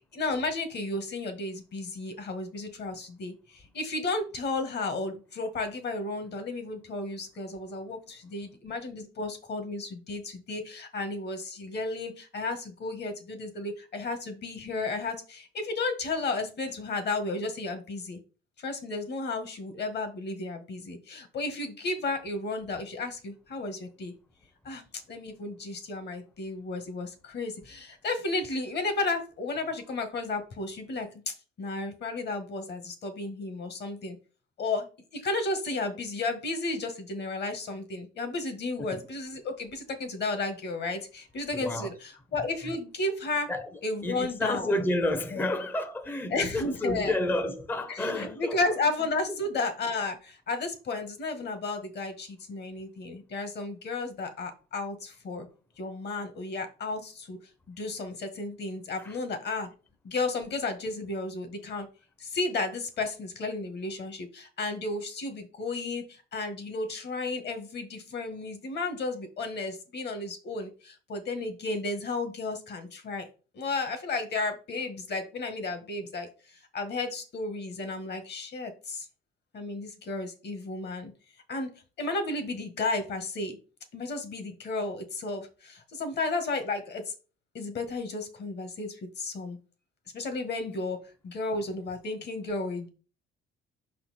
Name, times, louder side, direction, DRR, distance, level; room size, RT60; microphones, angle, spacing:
voice 1, 0.0-18.2 18.6-24.1 24.6-34.2 34.6-34.9 35.1-43.5 43.8-44.7 45.3-45.4 46.3-47.1 47.9-55.5 55.8-57.4 57.7-59.7 60.0-61.9 62.2-73.3 73.5-79.1 79.5-81.1 81.5-81.7 82.0-83.6 83.9-87.1 87.5-89.6 90.1-91.0 91.2-92.9, left 3 dB, 55° left, 1.5 m, -33 dB
voice 2, 41.5-41.9 43.5-43.7 44.0-48.6 59.0-59.2, left 1 dB, 10° left, 0.6 m, -30 dB
5.7 x 4.3 x 4.2 m
cardioid pair, 130°, 21 cm